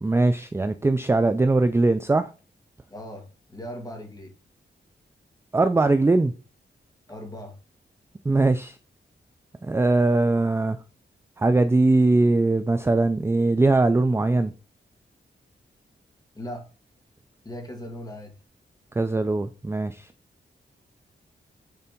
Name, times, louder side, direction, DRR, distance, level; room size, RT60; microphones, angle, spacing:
voice 1, 0.0-2.3 5.5-6.3 8.3-8.8 9.6-10.8 11.4-14.5 19.0-20.1, right 2 dB, 15° right, 0.4 m, -21 dB
voice 2, 2.9-4.3 7.1-7.6 16.3-16.7 17.4-18.4, equal, 20° left, 1.9 m, -38 dB
6.8 x 3.3 x 5.3 m
wide cardioid pair, 110°, 19 cm